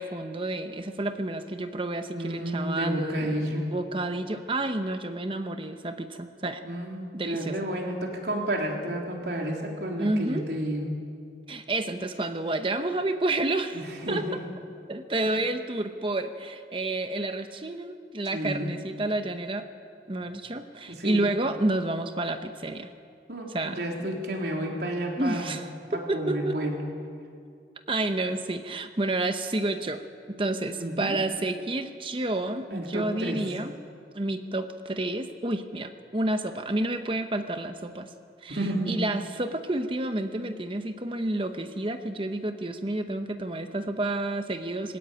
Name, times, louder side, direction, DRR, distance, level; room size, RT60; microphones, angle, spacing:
voice 1, 0.0-6.6 7.1-7.6 10.0-10.5 11.5-13.8 14.1-14.3 14.9-19.7 20.1-22.9 23.5-23.8 25.2-26.6 27.9-30.0 30.3-33.7 34.1-38.1 38.4-45.0, right 2 dB, 30° right, 8 dB, 0.9 m, -30 dB
voice 2, 2.1-3.6 6.6-10.9 13.7-14.4 15.2-15.4 18.3-18.8 20.9-21.3 23.3-25.5 25.9-26.9 30.8-31.2 32.7-33.4 38.5-39.1, right 1 dB, 65° right, 0 dB, 3.5 m, -31 dB
20.5 x 16.5 x 9.1 m, 2.3 s
head